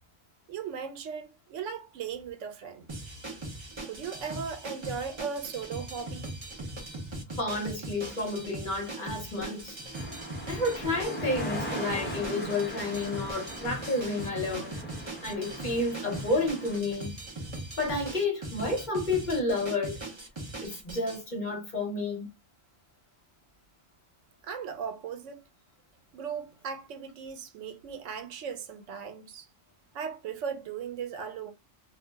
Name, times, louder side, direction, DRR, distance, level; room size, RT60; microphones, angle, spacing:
voice 1, 0.5-3.0 3.8-6.3 24.4-25.4 26.1-29.5 29.9-31.5, right 6 dB, 85° right, 1.0 m, -37 dB
sound 1, 2.9-21.2, right 2 dB, 30° right, 0.6 m, -40 dB
voice 2, 7.4-9.8 10.5-14.8 15.2-17.2 17.8-20.0 20.6-22.3, left 2 dB, 45° left, 0.9 m, -30 dB
sound 2, 9.9-16.8, equal, 15° left, 0.4 m, -39 dB
2.4 x 2.0 x 3.3 m
omnidirectional pair, 1.2 m